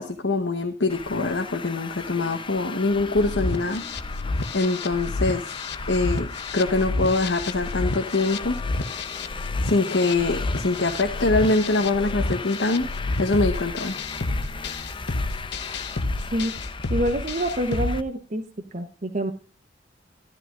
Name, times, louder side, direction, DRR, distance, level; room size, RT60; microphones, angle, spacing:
voice 1, 0.0-3.8 4.5-5.4 5.9-8.6 9.6-12.9 13.2-13.9, left 2 dB, 85° left, 4 dB, 1.2 m, -24 dB
Traffic noise roadway noise, 0.9-18.0, left 4 dB, 30° left, 0.7 m, -36 dB
sound 1, 3.2-17.9, left 2 dB, 65° left, 0.9 m, -30 dB
voice 2, 16.9-18.4 18.7-19.3, right 1 dB, 45° right, 6 dB, 1.0 m, -26 dB
13.0 x 12.5 x 2.5 m, 0.34 s
head